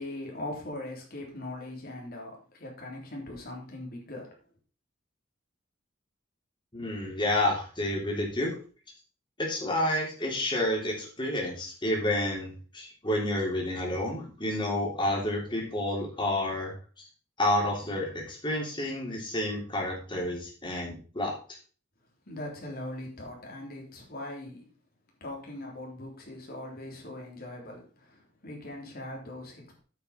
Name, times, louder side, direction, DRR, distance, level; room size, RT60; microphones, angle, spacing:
voice 1, 0.0-4.4 22.3-24.7 25.2-29.8, left 1 dB, 50° left, 3.5 m, -40 dB
voice 2, 6.7-8.5 9.4-17.0 17.4-21.3, left 1 dB, 25° left, 3.5 m, -30 dB
9.1 x 6.0 x 5.1 m
head